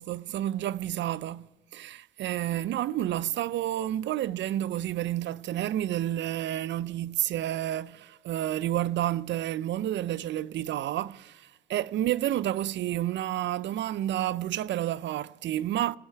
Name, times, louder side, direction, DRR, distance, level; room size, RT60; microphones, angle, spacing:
voice 1, 0.0-16.0, right 12 dB, 65° right, 0.4 m, -30 dB
23.0 x 8.3 x 4.6 m
cardioid pair, 90°, 20 cm